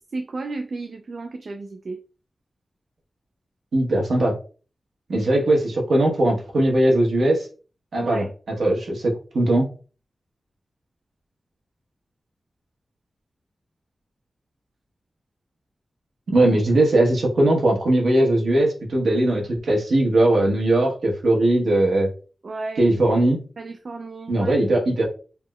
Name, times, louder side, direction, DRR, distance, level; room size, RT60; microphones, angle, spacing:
voice 1, 0.1-2.0 8.0-8.3 22.4-22.9 23.6-24.5, right 3 dB, 55° right, 0.3 m, -33 dB
voice 2, 3.7-4.3 5.1-7.5 7.9-8.2 8.6-9.7 16.3-22.1 22.8-23.4 24.3-25.1, right 1 dB, 85° right, 1.1 m, -19 dB
3.5 x 3.0 x 2.2 m
wide cardioid pair, 135°, 0 cm